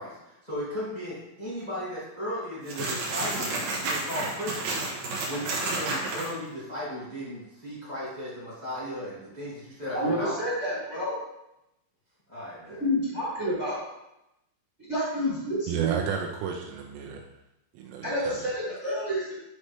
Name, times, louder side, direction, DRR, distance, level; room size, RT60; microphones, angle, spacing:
voice 1, 0.0-4.8 5.3-10.4 12.3-12.8, equal, 35° left, -11 dB, 0.6 m, -36 dB
sound 1, 2.7-6.3, right 2 dB, 65° right, 2.4 m, -31 dB
voice 2, 9.9-11.2 12.8-13.8 14.9-15.9 18.0-19.5, equal, 40° right, -9 dB, 0.9 m, -29 dB
voice 3, 15.7-17.2 17.7-18.5, right 8 dB, 85° right, 1 dB, 3.1 m, -32 dB
9.7 x 4.2 x 3.3 m, 0.89 s
omnidirectional pair, 5.7 m